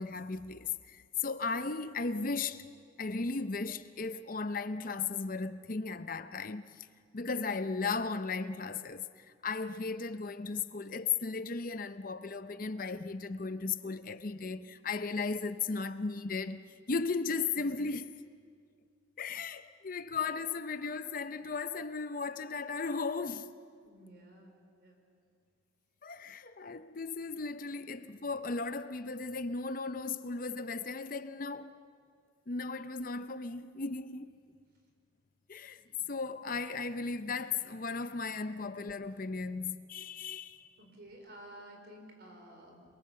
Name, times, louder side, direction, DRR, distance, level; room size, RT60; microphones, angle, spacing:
voice 1, 0.0-2.7 3.0-6.9 7.1-18.1 19.2-23.6 26.0-31.8 32.5-34.3 35.5-35.8 36.1-40.7, left 4 dB, 45° left, 0.7 m, -36 dB
voice 2, 23.8-25.1 40.8-42.8, right 1 dB, 55° right, 5.0 m, -52 dB
27.5 x 22.5 x 7.6 m
head